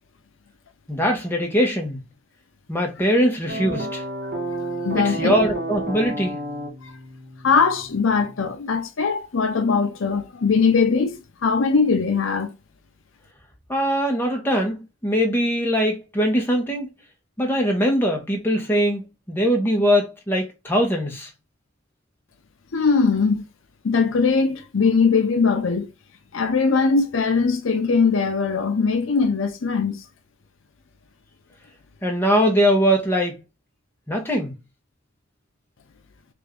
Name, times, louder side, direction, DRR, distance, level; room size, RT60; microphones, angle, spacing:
voice 1, 0.9-2.0 2.7-4.0 5.0-6.3 13.7-16.9 17.4-21.3 32.0-33.4 34.1-34.5, equal, 10° left, 0.9 m, -21 dB
sound 1, 3.5-8.5, right 1 dB, 55° right, 1.4 m, -31 dB
voice 2, 4.8-5.4 6.8-6.9 7.4-12.5 22.7-23.4 23.8-25.9 26.3-30.0, left 5 dB, 80° left, 0.6 m, -20 dB
3.5 x 2.6 x 3.4 m
head